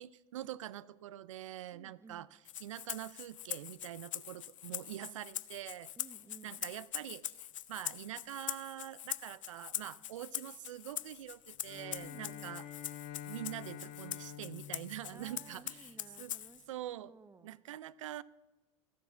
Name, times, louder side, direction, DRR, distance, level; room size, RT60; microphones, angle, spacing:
voice 1, 0.0-2.3 2.6-5.9 6.4-12.7 13.3-16.3 16.7-17.1 17.4-18.2, right 13 dB, 85° right, 20 dB, 0.4 m, -45 dB
voice 2, 1.7-2.3 6.0-6.6 12.0-12.5 15.1-17.6, right 4 dB, 15° right, 14 dB, 0.8 m, -57 dB
Rattle (instrument), 2.5-16.6, left 12 dB, 85° left, 0.4 m, -43 dB
Bowed string instrument, 11.6-16.1, left 10 dB, 55° left, 1.2 m, -48 dB
14.5 x 7.1 x 7.2 m, 1.1 s
hypercardioid pair, 80°, 16 cm